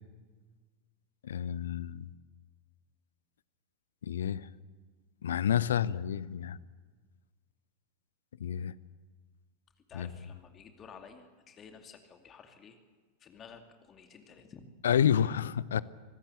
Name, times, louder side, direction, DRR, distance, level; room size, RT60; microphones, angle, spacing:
voice 1, 1.2-2.1 4.0-4.5 5.2-6.6 8.4-8.7 9.9-10.1 14.8-15.8, left 9 dB, 65° left, 20 dB, 0.7 m, -29 dB
voice 2, 9.9-12.8 13.2-14.6, left 6 dB, 25° left, 6 dB, 2.5 m, -52 dB
25.5 x 18.0 x 8.3 m, 1.4 s
figure-of-eight pair, 90°, 0 cm